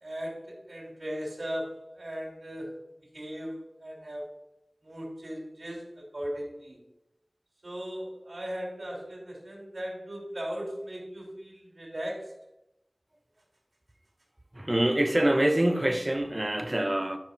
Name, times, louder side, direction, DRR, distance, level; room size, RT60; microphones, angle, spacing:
voice 1, 0.0-2.8 3.1-4.4 4.8-6.8 7.6-12.3, equal, 70° right, 3.0 m, -38 dB
voice 2, 14.5-17.2, right 1 dB, 30° right, 1.0 m, -25 dB
11.5 x 5.4 x 5.3 m
wide cardioid pair, 55°, 0 cm